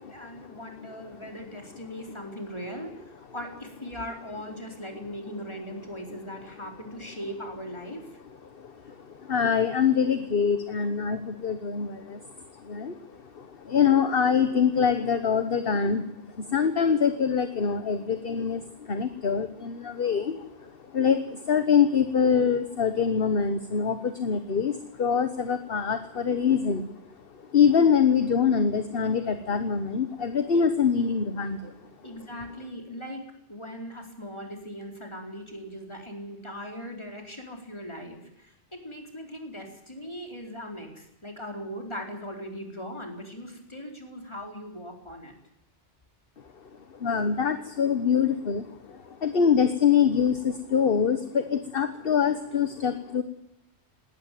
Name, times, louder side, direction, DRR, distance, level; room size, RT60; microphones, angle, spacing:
voice 1, 0.0-8.2 30.5-30.6 32.0-33.2 33.5-45.3, equal, 25° left, 2 dB, 4.6 m, -39 dB
voice 2, 8.6-8.9 9.2-12.2 12.6-13.0 13.3-16.0 16.4-26.9 27.5-31.7 47.0-53.2, left 6 dB, 55° left, 9 dB, 1.4 m, -24 dB
19.5 x 18.0 x 9.3 m, 0.85 s
omnidirectional pair, 1.2 m